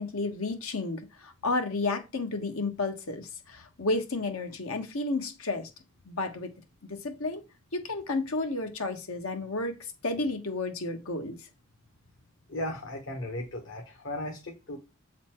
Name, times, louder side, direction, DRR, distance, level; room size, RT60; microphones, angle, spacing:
voice 1, 0.0-5.7 6.1-6.5 6.9-7.4 7.7-11.4, left 3 dB, 85° left, 1.3 m, -32 dB
voice 2, 12.5-14.8, left 1 dB, 65° left, 1.2 m, -36 dB
7.4 x 4.2 x 4.4 m
head